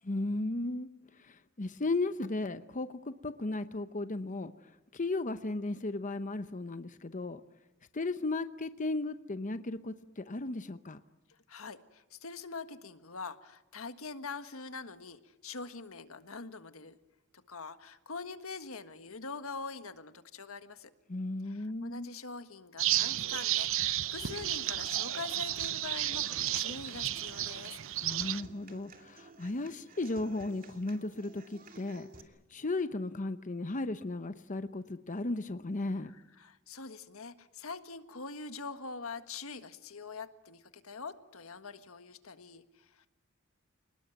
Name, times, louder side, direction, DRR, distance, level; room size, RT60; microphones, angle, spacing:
voice 1, 0.1-0.9 1.3-4.5 4.9-7.4 7.9-11.0 21.1-22.1 28.0-32.1 32.5-36.1, left 2 dB, 35° left, 11 dB, 0.9 m, -35 dB
voice 2, 11.3-16.9 17.5-20.9 21.4-27.8 36.0-43.1, left 4 dB, 80° left, 10 dB, 1.6 m, -44 dB
sound 1, 22.8-28.4, right 13 dB, 70° right, 0.9 m, -32 dB
Human voice / Acoustic guitar, 24.2-32.2, right 3 dB, 40° right, 2.7 m, -54 dB
28.5 x 20.0 x 9.2 m, 1.0 s
head